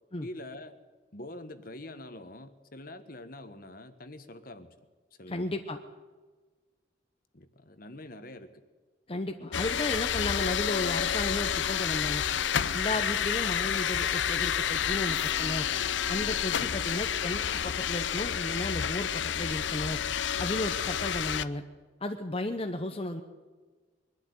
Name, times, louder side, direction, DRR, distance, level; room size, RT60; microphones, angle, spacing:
voice 1, 0.2-0.7 1.1-4.7 5.2-5.5 7.3-8.5 16.5-16.7, left 1 dB, 50° left, 10 dB, 1.4 m, -45 dB
voice 2, 5.3-5.8 9.1-12.2 12.7-15.7 16.1-20.0 20.4-21.6 22.0-23.2, left 1 dB, 30° left, 5 dB, 0.9 m, -34 dB
sound 1, 9.5-21.4, left 8 dB, 75° left, 0.6 m, -29 dB
22.0 x 12.0 x 9.6 m, 1.4 s
head